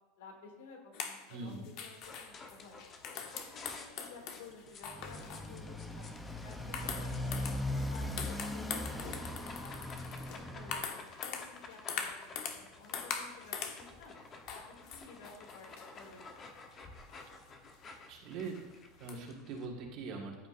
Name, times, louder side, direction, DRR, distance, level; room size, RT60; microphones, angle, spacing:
voice 1, 0.2-1.5 1.8-2.7 3.3-7.5 7.9-9.7 10.2-14.1 14.5-16.5, left 4 dB, 90° left, 1 dB, 2.5 m, -54 dB
sound 1, 0.9-5.5 5.9-6.2 6.7-7.8 8.2-12.7 12.9-13.8 14.5-16.1 17.2-17.3 17.9-18.0 18.5-18.6 19.1-19.2, left 7 dB, 50° left, 1.1 m, -42 dB
voice 2, 1.3-1.7 18.1-18.6 19.0-20.5, right 4 dB, 50° right, -2 dB, 1.7 m, -42 dB
sound 2, 2.0-19.7, left 3 dB, 25° left, 1.0 m, -53 dB
Motorcycle, 4.8-10.8, left 1 dB, 5° left, 0.6 m, -39 dB
14.0 x 7.9 x 2.6 m, 1.2 s
supercardioid pair, 150°, 0 cm